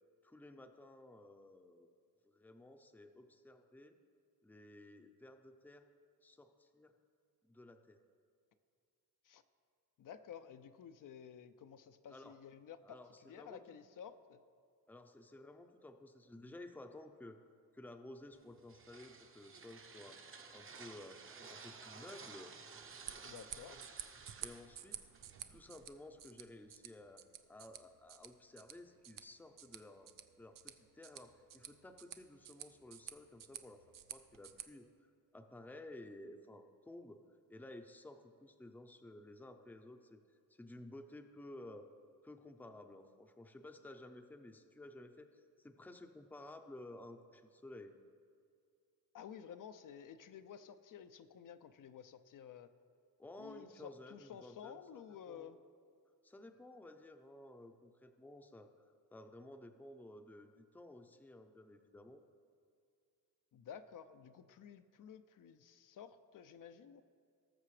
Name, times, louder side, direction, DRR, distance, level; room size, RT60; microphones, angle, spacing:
voice 1, 0.2-1.9 2.2-4.0 4.4-5.9 6.2-6.9 7.4-8.0 12.1-12.4 12.8-13.6 14.9-17.4 17.7-20.2 20.5-21.2 21.5-22.5 24.4-25.0 25.5-27.2 27.5-30.1 30.4-33.8 34.1-34.9 35.3-37.2 37.5-40.2 40.5-41.9 42.2-48.0 53.2-55.0 55.3-55.6 56.2-58.7 59.1-62.2, left 1 dB, 5° left, 6 dB, 0.6 m, -54 dB
voice 2, 10.0-14.4 23.2-23.8 49.1-52.7 53.4-55.6 63.5-67.0, left 8 dB, 65° left, 10 dB, 0.5 m, -53 dB
sound 1, 18.3-25.8, right 5 dB, 35° right, 0.8 m, -55 dB
sound 2, 22.8-34.6, right 10 dB, 70° right, 0.6 m, -52 dB
19.0 x 6.7 x 3.2 m, 2.2 s
cardioid pair, 105°, 35 cm